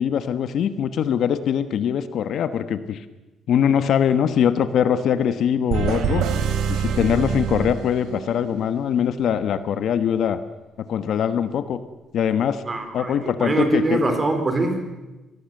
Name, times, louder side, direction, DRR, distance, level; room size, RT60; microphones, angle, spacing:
voice 1, 0.0-3.0 3.5-6.3 6.7-10.4 10.9-11.8 12.1-12.6 12.9-14.0, left 8 dB, 60° left, 12 dB, 1.3 m, -22 dB
sound 1, 5.7-8.5, right 7 dB, 85° right, 3.1 m, -25 dB
voice 2, 12.7-14.9, right 2 dB, 20° right, 7 dB, 3.8 m, -23 dB
26.0 x 19.5 x 7.9 m, 1.1 s
cardioid pair, 165°, 0 cm